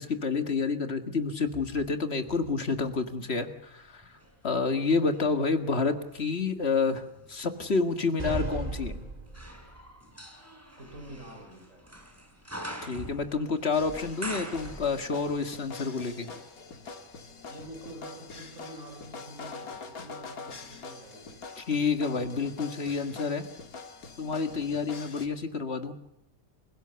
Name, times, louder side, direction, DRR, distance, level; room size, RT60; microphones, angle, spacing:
voice 1, 0.0-4.2 4.4-8.9 12.8-16.3 21.6-23.5 24.2-25.9, left 4 dB, 45° left, 7 dB, 2.1 m, -29 dB
sound 1, 1.3-3.5 4.0-15.4 15.6-15.7, right 1 dB, 10° right, 3.9 m, -45 dB
voice 2, 4.7-5.0 10.8-11.8 17.5-21.4, right 1 dB, 60° right, 3 dB, 4.9 m, -47 dB
sound 2, 8.2-9.9, right 2 dB, 30° right, 2.2 m, -35 dB
sound 3, 13.7-25.3, left 4 dB, 85° left, 2.4 m, -44 dB
29.0 x 17.0 x 6.9 m, 0.83 s
omnidirectional pair, 1.5 m